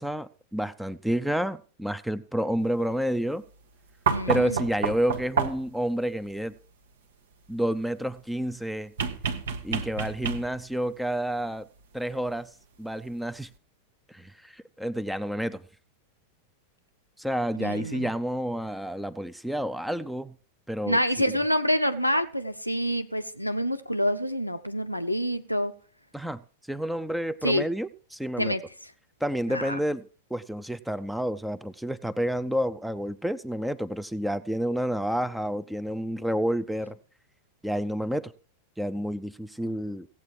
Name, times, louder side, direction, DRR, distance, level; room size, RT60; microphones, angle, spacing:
voice 1, 0.0-3.4 4.3-6.5 7.5-8.9 9.6-11.7 11.9-12.5 12.8-13.5 14.1-15.6 17.2-20.3 20.7-21.0 26.1-26.4 26.7-28.5 29.2-30.0 30.3-37.0 37.6-38.3 38.8-40.1, equal, ahead, 0.6 m, -29 dB
voice 2, 4.1-4.6 17.6-18.1 20.9-25.7 27.4-27.7 28.4-28.6 29.5-29.8, equal, 90° left, 0.7 m, -27 dB
sound 1, 4.1-5.8 9.0-10.7 12.3-12.4, right 6 dB, 60° right, 0.9 m, -29 dB
16.0 x 8.2 x 4.6 m
figure-of-eight pair, 90°, 0 cm